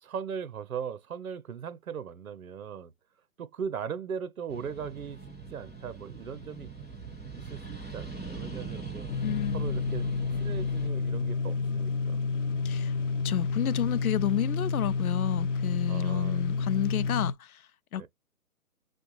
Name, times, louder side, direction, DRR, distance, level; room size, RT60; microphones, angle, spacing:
voice 1, 0.0-2.9 3.4-6.7 7.3-9.1 9.5-10.1 10.4-12.3 15.9-16.4 17.9-18.1, right 7 dB, 65° right, 0.8 m, -39 dB
sound 1, 4.5-10.9, right 4 dB, 5° left, 0.8 m, -41 dB
sound 2, 9.1-17.3, left 4 dB, 55° left, 0.9 m, -30 dB
voice 2, 9.2-9.8 12.6-13.0 13.2-18.1, left 12 dB, 70° left, 0.6 m, -31 dB
6.3 x 2.4 x 3.1 m
hypercardioid pair, 155°, 45 cm